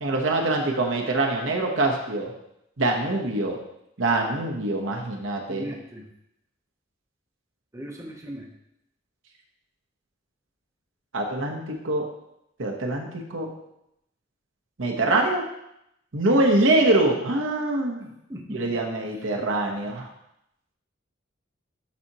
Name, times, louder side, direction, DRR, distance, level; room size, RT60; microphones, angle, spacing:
voice 1, 0.0-2.3 2.8-3.6 4.0-5.6 11.1-12.0 12.6-13.5 14.8-15.4 16.1-18.1 18.5-20.1, right 2 dB, 75° right, 0 dB, 1.1 m, -24 dB
voice 2, 5.5-6.1 7.7-8.5 18.3-18.6, equal, 15° right, -1 dB, 0.9 m, -37 dB
11.5 x 4.3 x 2.9 m, 0.81 s
head